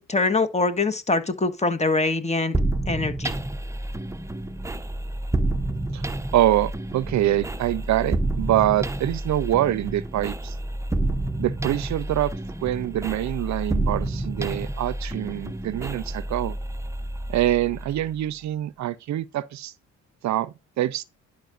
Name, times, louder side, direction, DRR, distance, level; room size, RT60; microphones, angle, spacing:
voice 1, 0.0-2.5 2.9-3.3, left 3 dB, 20° left, 1.5 m, -23 dB
sound 1, 2.5-18.2, right 1 dB, 10° right, 0.7 m, -29 dB
voice 2, 5.9-10.5 11.4-12.3 12.6-16.6 17.3-19.7 20.2-21.0, right 13 dB, 65° right, 0.6 m, -25 dB
11.5 x 5.0 x 2.5 m
cardioid pair, 90°, 30 cm